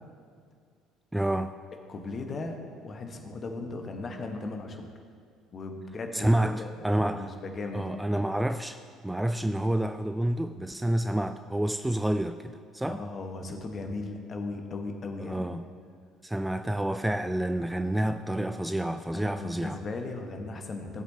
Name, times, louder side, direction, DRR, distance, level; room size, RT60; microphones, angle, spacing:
voice 1, 1.1-1.5 6.1-7.3 7.7-8.8 9.0-13.0 15.2-15.7 16.2-19.8, right 1 dB, 5° right, 9 dB, 0.3 m, -28 dB
voice 2, 1.9-2.6 2.8-4.9 5.5-6.7 6.9-7.8 12.8-15.5 19.1-21.0, left 3 dB, 35° left, 4 dB, 1.2 m, -37 dB
16.5 x 7.9 x 2.8 m, 2.1 s
figure-of-eight pair, 55°, 0 cm